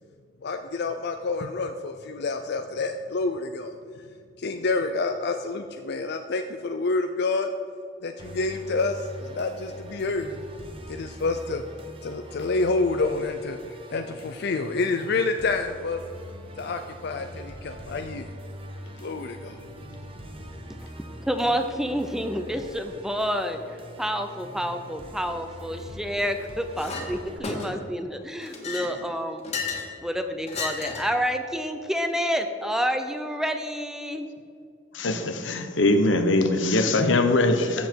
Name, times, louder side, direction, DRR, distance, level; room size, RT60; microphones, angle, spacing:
voice 1, 0.4-3.7 4.4-7.5 8.0-10.4 10.9-11.6 12.0-16.0 16.6-18.3 19.0-19.8 20.4-20.9, left 3 dB, 60° left, 6 dB, 0.5 m, -28 dB
Musical instrument, 8.2-27.4, equal, 30° right, 1.1 m, -43 dB
voice 2, 21.3-23.6 24.0-29.4 30.0-34.3, equal, 5° right, 7 dB, 0.6 m, -28 dB
Chink clink, 26.8-27.1 27.4-27.9 28.4-29.9 30.5-31.2, left 4 dB, 35° left, 1.9 m, -33 dB
voice 3, 34.9-37.9, left 2 dB, 75° left, 7 dB, 1.0 m, -22 dB
14.0 x 7.4 x 4.6 m, 2.3 s
head